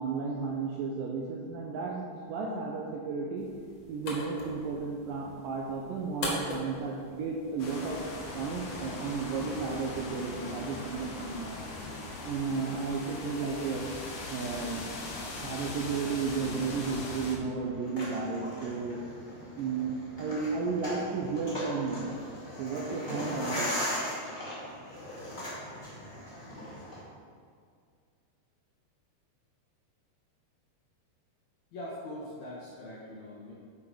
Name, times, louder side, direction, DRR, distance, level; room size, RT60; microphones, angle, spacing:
voice 1, 0.0-3.5 3.9-8.0 8.3-11.6 12.2-13.9 14.3-19.0 19.6-22.1 22.6-23.7, right 4 dB, 85° right, -1 dB, 2.0 m, -33 dB
sound 1, 3.4-8.4, left 2 dB, 55° left, 2.2 m, -41 dB
sound 2, 7.6-17.4, left 2 dB, 85° left, 1.4 m, -40 dB
sound 3, 16.1-27.0, equal, 30° left, 0.9 m, -39 dB
voice 2, 31.7-33.5, left 1 dB, 70° left, -6 dB, 1.8 m, -42 dB
8.4 x 4.9 x 4.8 m, 2.1 s
omnidirectional pair, 4.6 m